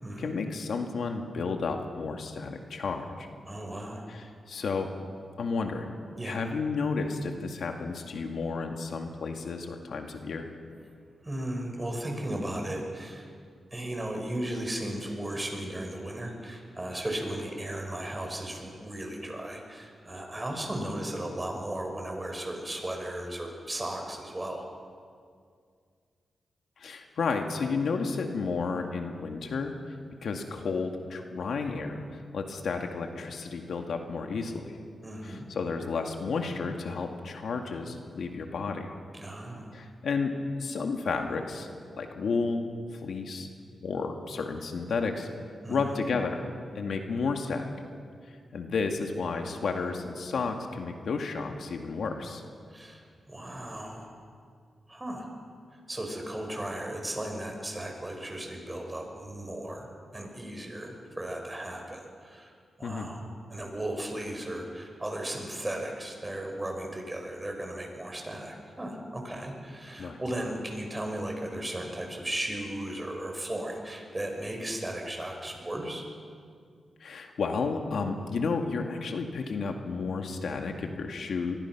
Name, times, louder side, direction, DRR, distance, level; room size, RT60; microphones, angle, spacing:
voice 1, 0.2-3.3 4.1-4.9 5.4-5.9 6.2-10.5 26.8-30.0 30.2-34.8 35.2-38.9 39.7-40.3 40.6-41.7 41.9-43.5 43.8-45.3 45.7-46.4 46.8-47.7 48.3-52.4 62.8-63.1 70.0-70.2 77.0-81.6, left 4 dB, 75° left, 4 dB, 2.1 m, -32 dB
voice 2, 3.5-4.1 6.2-6.4 11.2-13.3 13.7-24.7 35.0-35.5 39.1-39.7 45.6-46.0 52.7-53.0 53.3-54.1 54.9-55.3 55.7-59.9 60.1-63.2 63.5-76.1, right 1 dB, 20° right, 2 dB, 5.7 m, -36 dB
25.5 x 21.0 x 6.1 m, 2.2 s
cardioid pair, 70°, 0 cm